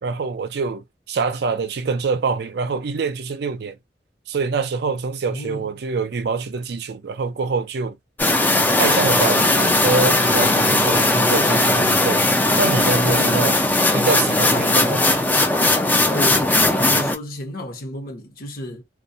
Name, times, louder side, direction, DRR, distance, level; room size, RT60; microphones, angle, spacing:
voice 1, 0.0-3.8 4.3-8.0 8.8-12.2 12.6-13.5 13.9-15.1, right 4 dB, 60° right, 0.4 m, -25 dB
voice 2, 5.3-5.7 13.0-13.5 16.1-18.8, left 1 dB, 55° left, 0.9 m, -32 dB
sound 1, 8.2-17.2, left 2 dB, 10° left, 0.4 m, -18 dB
2.3 x 2.1 x 2.6 m
head